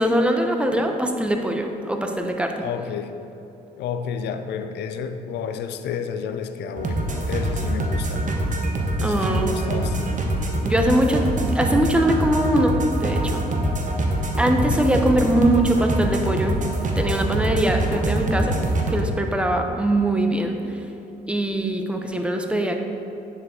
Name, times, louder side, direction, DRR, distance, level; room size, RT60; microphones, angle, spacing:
voice 1, 0.0-2.6 9.0-9.8 10.7-13.4 14.4-16.6 17.0-18.6 18.9-20.6 21.3-22.8, right 1 dB, 5° right, 4 dB, 0.8 m, -22 dB
voice 2, 2.6-3.2 3.8-8.2 9.0-10.4 14.6-14.8, left 7 dB, 75° left, 8 dB, 0.4 m, -31 dB
sound 1, 6.8-19.0, right 1 dB, 45° right, 0.9 m, -24 dB
9.4 x 4.1 x 3.7 m, 2.8 s
supercardioid pair, 55°, 18 cm